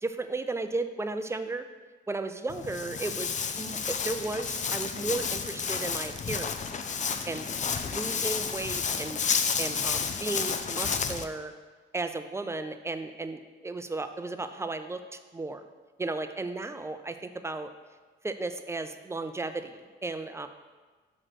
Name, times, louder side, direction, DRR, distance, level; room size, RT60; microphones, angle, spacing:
voice 1, 0.0-1.6 2.1-6.8 7.3-7.5 7.8-9.2 9.6-11.5 11.9-15.6 16.0-17.7 18.2-20.5, right 2 dB, 15° right, 9 dB, 0.5 m, -34 dB
Walk footsteps, 2.5-11.2, left 6 dB, 40° left, 0.6 m, -31 dB
6.3 x 5.0 x 5.8 m, 1.4 s
cardioid pair, 90°, 20 cm